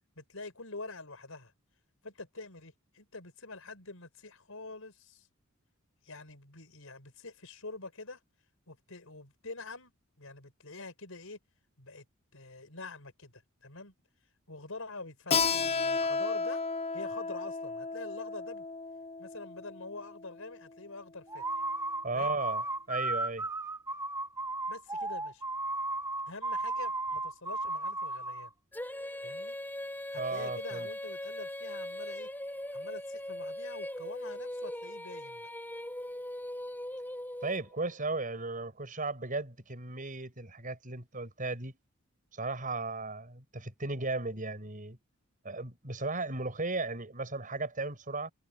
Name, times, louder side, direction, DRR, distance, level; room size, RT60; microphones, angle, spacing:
voice 1, 0.2-1.5 2.0-5.3 6.0-8.2 8.7-9.9 10.2-11.4 11.8-12.1 12.3-13.9 14.5-16.6 16.9-18.7 19.2-21.4 22.1-22.4 24.7-25.4 26.3-28.5 29.2-29.6 30.1-32.3 32.7-35.5, left 3 dB, 80° left, 5.2 m, -46 dB
Keyboard (musical), 15.3-20.6, left 4 dB, 30° left, 0.5 m, -33 dB
sound 1, 21.3-28.5, right 2 dB, 15° right, 2.4 m, -34 dB
voice 2, 22.0-23.5 30.2-30.9 37.4-41.7 42.3-45.0 45.4-48.3, right 3 dB, 40° right, 6.1 m, -36 dB
Female singing, 28.7-37.9, left 1 dB, 10° left, 3.9 m, -40 dB
head